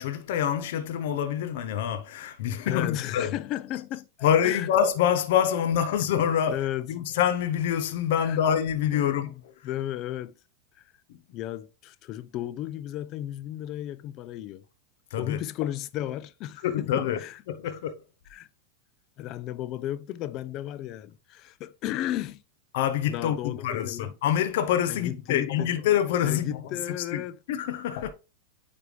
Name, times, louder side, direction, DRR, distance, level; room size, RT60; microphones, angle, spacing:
voice 1, 0.0-3.4 4.2-9.5 11.1-11.2 15.1-15.4 16.6-17.2 17.5-17.9 22.7-26.6 27.1-27.2 27.5-28.1, left 9 dB, 65° left, 0.8 m, -26 dB
voice 2, 2.7-4.1 4.4-4.7 6.5-6.9 8.2-8.4 8.9-10.4 11.3-14.6 15.2-17.4 18.3-18.5 19.2-22.4 23.1-24.1 24.9-25.7 26.2-27.4, left 13 dB, 45° left, 0.5 m, -34 dB
9.2 x 3.5 x 3.1 m
hypercardioid pair, 105°, 0 cm